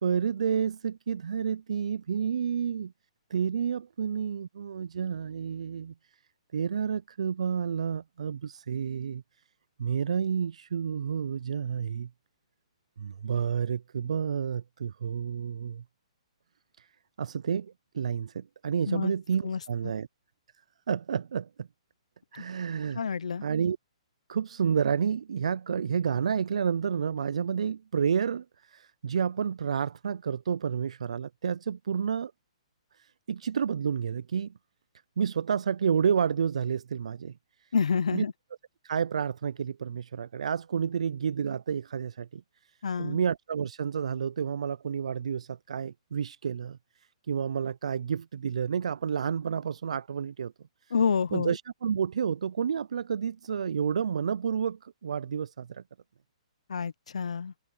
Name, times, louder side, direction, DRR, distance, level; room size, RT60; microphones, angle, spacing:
voice 1, 0.0-2.9 3.3-5.9 6.5-9.2 9.8-12.1 13.0-15.8 16.8-16.9 17.2-20.1 20.9-21.7 22.3-23.0 23.4-23.8 24.3-32.3 32.9-34.5 35.2-37.7 38.1-38.2 38.8-50.5 51.3-55.8, right 7 dB, 75° right, 0.4 m, -30 dB
voice 2, 22.9-23.4 37.7-38.3 42.8-43.2 50.9-51.5 56.7-57.5, left 6 dB, 80° left, 0.8 m, -28 dB
hypercardioid pair, 145°, 3 cm